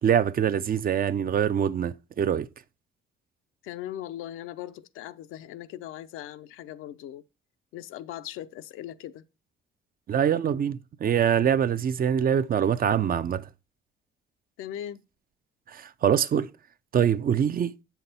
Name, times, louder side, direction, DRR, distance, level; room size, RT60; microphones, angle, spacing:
voice 1, 0.0-2.5 10.1-13.5 15.7-16.5 16.9-17.7, right 8 dB, 45° right, 0.6 m, -24 dB
voice 2, 3.6-7.2 7.7-9.2 14.6-15.0, left 12 dB, 80° left, 0.6 m, -39 dB
7.8 x 5.8 x 4.0 m
cardioid pair, 80°, 21 cm